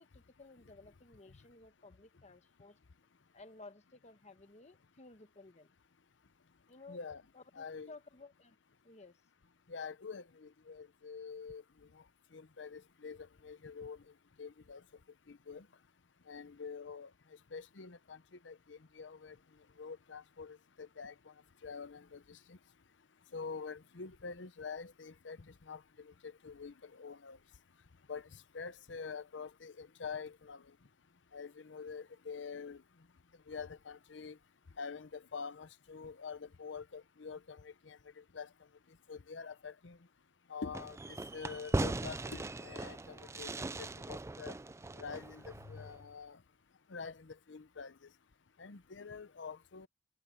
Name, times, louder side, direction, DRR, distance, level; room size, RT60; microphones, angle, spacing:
voice 1, 0.0-2.8 3.3-5.7 6.7-7.0 7.3-8.6 8.8-9.2, left 3 dB, 40° left, 1.4 m, -56 dB
voice 2, 6.9-7.2 7.5-7.9 9.7-11.6 11.9-12.0 12.3-14.0 14.4-14.8 15.3-15.7 16.3-17.1 17.5-19.4 19.8-21.3 21.6-22.6 23.3-27.4 28.1-30.8 31.3-32.8 33.5-34.4 34.8-38.5 39.1-40.0 40.5-43.5 43.8-44.5 45.0-46.4 46.9-48.1 48.6-49.9, left 5 dB, 85° left, 0.8 m, -46 dB
Fireworks, 40.7-46.0, right 2 dB, 15° right, 0.4 m, -39 dB
head